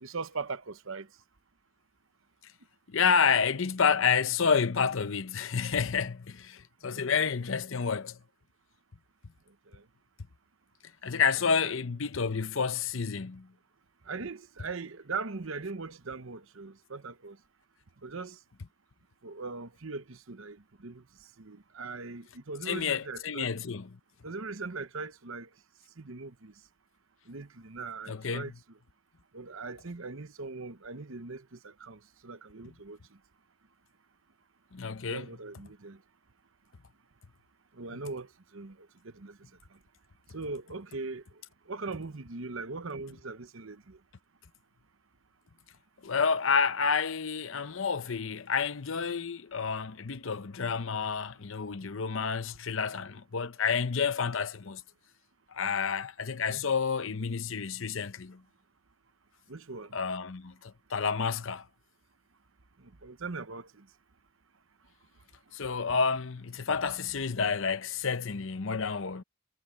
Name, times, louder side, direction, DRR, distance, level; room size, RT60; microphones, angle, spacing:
voice 1, 0.0-1.1 6.8-7.3 9.7-9.8 11.6-11.8 14.0-17.4 18.0-18.4 19.2-21.0 21.4-23.5 24.2-25.5 26.0-26.5 27.3-28.5 29.3-33.0 35.1-36.0 37.7-39.4 40.3-41.2 41.7-44.0 56.5-56.6 59.5-60.0 62.8-63.9, right 3 dB, 65° right, 1.0 m, -40 dB
voice 2, 2.9-8.2 11.0-13.5 22.7-24.0 28.1-28.5 34.7-35.3 46.0-54.8 55.5-58.4 59.9-61.6 65.5-69.2, left 6 dB, 65° left, 0.7 m, -29 dB
head